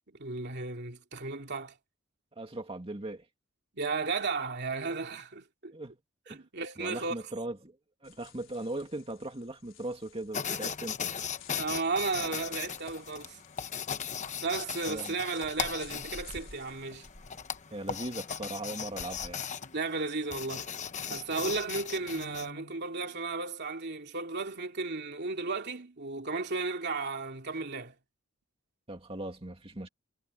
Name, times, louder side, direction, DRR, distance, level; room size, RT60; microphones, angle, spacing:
voice 1, 0.2-1.7 3.7-5.7 6.3-7.1 11.6-13.4 14.4-17.1 19.7-20.7 21.1-27.9, right 3 dB, 55° right, 2.8 m, -34 dB
voice 2, 2.4-3.3 5.7-6.0 6.3-6.4 6.8-7.8 8.0-11.1 14.9-15.1 17.7-19.4 28.9-29.9, right 1 dB, 25° right, 2.3 m, -39 dB
sound 1, 8.0-19.3, left 3 dB, 65° left, 4.9 m, -54 dB
sound 2, 10.3-22.5, left 7 dB, 35° left, 1.0 m, -38 dB
Guitar, 22.0-22.8, left 3 dB, 85° left, 1.3 m, -48 dB
head